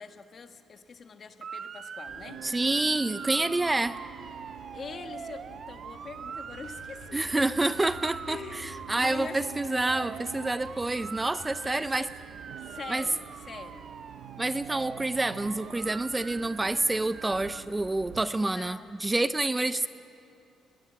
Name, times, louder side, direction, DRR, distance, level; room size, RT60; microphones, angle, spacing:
voice 1, 0.0-2.4 4.7-7.5 8.3-9.4 11.6-12.1 12.6-13.9 18.2-19.1 19.4-19.9, left 5 dB, 45° left, 8 dB, 1.4 m, -44 dB
Motor vehicle (road) / Siren, 1.4-17.6, right 6 dB, 55° right, 1.1 m, -43 dB
sound 1, 2.1-18.2, right 10 dB, 80° right, 0.8 m, -47 dB
voice 2, 2.4-4.0 7.1-12.1 12.9-13.0 14.4-19.9, right 2 dB, 15° right, 14 dB, 0.5 m, -28 dB
sound 2, 6.5-11.8, left 5 dB, 75° left, 2.4 m, -51 dB
20.5 x 19.0 x 8.7 m, 2.9 s
cardioid pair, 90°, 0 cm